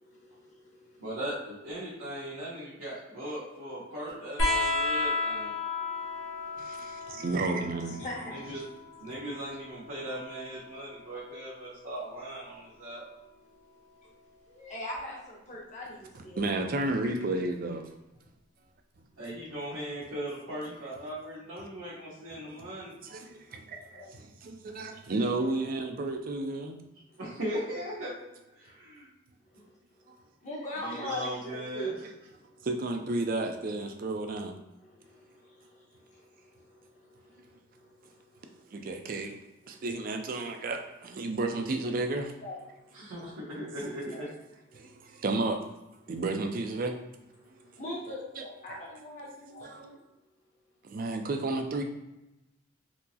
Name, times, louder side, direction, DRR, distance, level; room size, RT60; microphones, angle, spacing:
voice 1, 0.0-1.1 5.8-7.2 7.8-8.4 14.5-16.7 23.7-24.1 25.4-25.5 30.0-30.1 30.4-32.6 34.8-38.6 39.6-39.8 42.4-42.9 44.1-44.2 44.7-44.9 47.4-50.0, left 1 dB, 35° left, -3 dB, 0.8 m, -43 dB
voice 2, 1.0-5.6 8.3-8.6 9.0-13.0 19.2-23.0 27.2-28.1 28.5-29.1 30.8-31.9 42.9-44.3, right 1 dB, 90° right, -10 dB, 1.1 m, -38 dB
sound 1, 4.4-11.5 12.8-13.7 15.0-15.1, left 3 dB, 75° left, 1.1 m, -34 dB
voice 3, 6.6-8.0 16.1-17.8 22.6-22.7 23.0-26.8 30.1-30.2 32.6-34.6 38.7-39.4 39.7-42.3 44.7-45.6 46.1-46.9 48.4-48.5 49.6-49.9 50.8-51.8, right 2 dB, 45° right, 5 dB, 0.4 m, -32 dB
4.4 x 2.0 x 2.7 m, 0.97 s
head